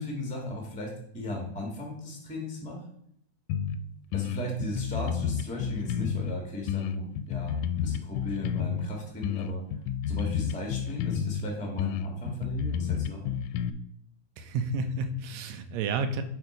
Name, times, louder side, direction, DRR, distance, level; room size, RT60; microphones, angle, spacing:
voice 1, 0.0-2.8 4.1-9.6 10.1-13.3, left 1 dB, 5° left, 0 dB, 0.8 m, -36 dB
sound 1, 3.5-3.8 4.1-6.3 6.7-8.9 9.2-11.4 11.8-13.7, left 8 dB, 80° left, 1.9 m, -30 dB
voice 2, 14.4-16.2, right 3 dB, 75° right, 8 dB, 1.7 m, -30 dB
7.5 x 4.2 x 5.0 m, 0.71 s
omnidirectional pair, 3.5 m